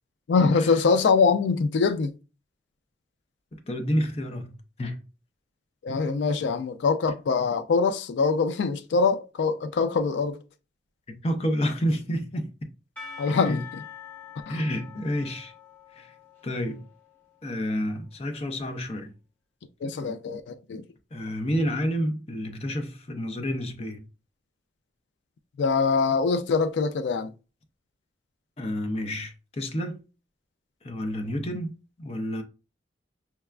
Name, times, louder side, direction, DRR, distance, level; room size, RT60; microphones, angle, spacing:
voice 1, 0.3-2.1 5.8-10.4 13.2-13.6 14.5-14.6 19.8-20.8 25.6-27.3, left 4 dB, 90° left, 0.3 m, -23 dB
voice 2, 3.5-5.0 11.1-12.5 13.2-13.6 14.5-15.5 15.9-16.1 16.4-16.9 17.4-19.1 21.1-24.1 28.6-30.0 30.8-32.4, equal, 35° left, 0.5 m, -29 dB
Percussion / Church bell, 13.0-17.7, left 7 dB, 10° left, 1.0 m, -45 dB
5.7 x 2.3 x 2.2 m
head